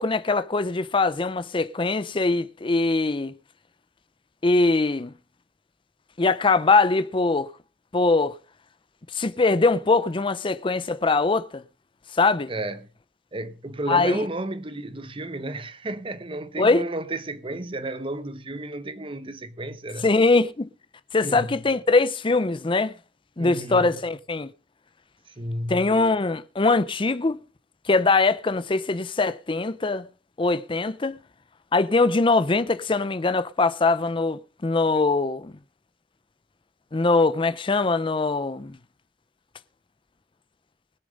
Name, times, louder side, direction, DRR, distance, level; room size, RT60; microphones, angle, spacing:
voice 1, 0.0-3.3 4.4-5.1 6.2-7.5 7.9-8.4 9.1-11.6 12.1-12.5 13.9-14.3 16.6-16.8 20.0-20.7 21.1-22.9 23.4-24.5 25.7-27.4 27.9-30.1 30.4-31.2 31.7-35.5 36.9-38.8, left 3 dB, 30° left, 0.6 m, -22 dB
voice 2, 12.5-12.9 13.3-20.1 21.2-21.6 23.4-24.0 25.4-26.0, right 1 dB, 30° right, 0.9 m, -32 dB
20.5 x 6.8 x 5.2 m
head